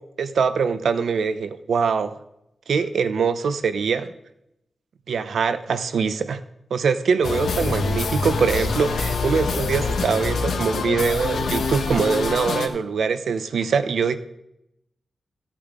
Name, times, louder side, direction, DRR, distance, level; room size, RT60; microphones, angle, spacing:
voice 1, 0.2-2.2 2.7-4.1 5.1-6.4 6.7-14.2, right 5 dB, 80° right, 11 dB, 0.7 m, -23 dB
sound 1, 7.2-12.7, left 4 dB, 85° left, 1.2 m, -25 dB
14.0 x 8.5 x 3.7 m, 0.83 s
wide cardioid pair, 130°, 0 cm